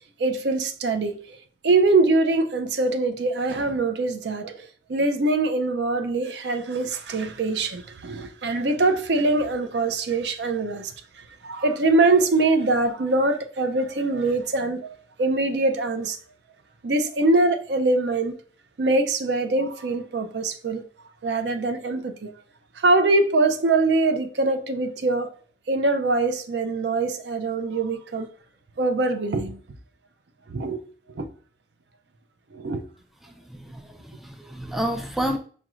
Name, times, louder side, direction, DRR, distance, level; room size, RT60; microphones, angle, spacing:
voice 1, 0.2-1.4 1.6-10.9 11.2-16.2 16.8-18.3 18.8-20.8 21.2-22.3 22.8-25.3 25.7-28.3 28.8-29.6 30.5-30.8 31.2-31.3 32.5-32.8, right 2 dB, 70° right, 0.5 m, -23 dB
voice 2, 33.2-35.4, equal, ahead, 0.3 m, -30 dB
5.0 x 3.0 x 2.4 m
head